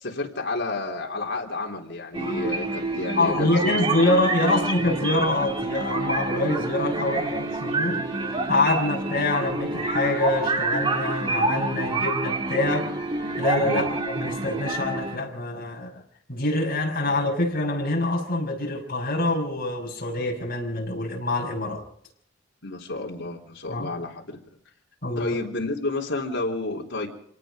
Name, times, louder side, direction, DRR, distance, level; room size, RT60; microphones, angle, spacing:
voice 1, 0.0-3.7 4.0-4.7 6.9-7.4 13.6-14.0 17.0-17.2 22.6-24.4 25.2-27.1, left 2 dB, 65° left, -1 dB, 3.9 m, -31 dB
sound 1, 2.1-15.2, right 2 dB, 25° right, 1.7 m, -27 dB
voice 2, 3.1-8.1 8.5-12.9 13.4-15.9 16.3-21.8 23.7-23.9 25.0-25.4, left 2 dB, 45° left, 0 dB, 6.1 m, -25 dB
26.5 x 18.5 x 5.3 m, 0.64 s
head